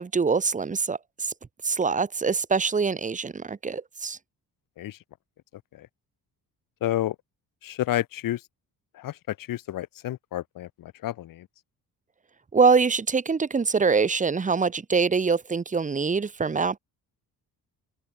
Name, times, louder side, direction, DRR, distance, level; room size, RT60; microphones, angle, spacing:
voice 1, 0.0-1.3 1.6-4.2 12.5-16.8, right 5 dB, 20° right, 1.3 m, -24 dB
voice 2, 6.8-7.1 7.6-8.4 8.9-11.5, left 13 dB, 60° left, 1.1 m, -30 dB
cardioid pair, 140°, 38 cm